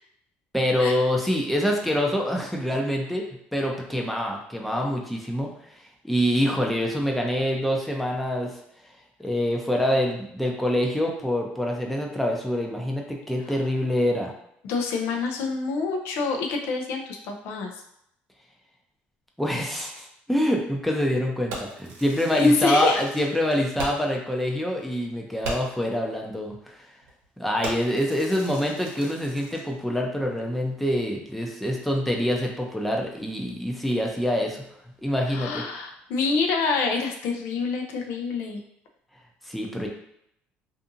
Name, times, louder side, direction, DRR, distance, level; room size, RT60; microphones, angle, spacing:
voice 1, 0.5-3.2 3.5-5.5 6.0-8.6 9.2-14.3 19.4-26.8 27.4-34.6 35.0-35.6 39.5-39.9, equal, ahead, 0 dB, 0.5 m, -25 dB
voice 2, 14.6-17.7 22.3-23.0 35.3-38.6, left 4 dB, 75° left, 3 dB, 0.5 m, -26 dB
Fireworks, 21.5-24.2 24.6-24.7 25.0-25.1 25.4-25.9 26.5-26.7 27.0-27.3 27.6-29.7, right 2 dB, 80° right, 0.8 m, -38 dB
2.6 x 2.5 x 2.6 m, 0.75 s
cardioid pair, 105°, 4 cm